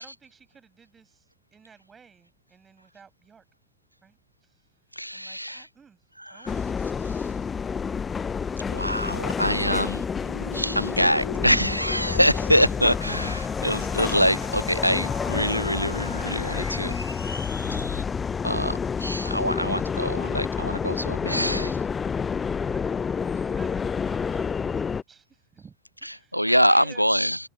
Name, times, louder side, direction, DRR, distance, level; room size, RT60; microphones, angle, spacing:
voice 1, 0.0-3.4 4.0-4.6 5.1-6.0 6.3-6.7 13.2-13.3 22.4-27.2, right 6 dB, 20° right, 7.5 m, -52 dB
voice 2, 5.0-5.7 6.3-6.4 8.7-10.0 10.5-17.0 18.4-21.8 26.3-27.4, equal, 90° right, 0.4 m, -24 dB
sound 1, 6.5-25.0, left 6 dB, 20° left, 0.5 m, -29 dB
sound 2, 9.8-18.0, left 2 dB, 85° left, 4.8 m, -40 dB
figure-of-eight pair, 90°, 0 cm